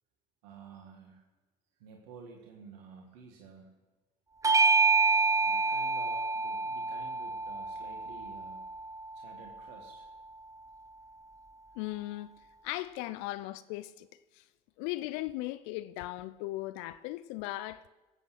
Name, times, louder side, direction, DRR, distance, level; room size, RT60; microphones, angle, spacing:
voice 1, 0.4-1.2 1.8-3.7 5.4-8.6 9.2-10.1, right 5 dB, 75° right, 1.7 m, -51 dB
Bell / Doorbell, 4.4-9.3, right 4 dB, 15° right, 0.5 m, -28 dB
voice 2, 11.8-12.3 12.6-14.1 14.4-14.5 14.8-17.8, left 17 dB, 70° left, 0.5 m, -37 dB
18.5 x 8.3 x 6.1 m
hypercardioid pair, 55°, 20 cm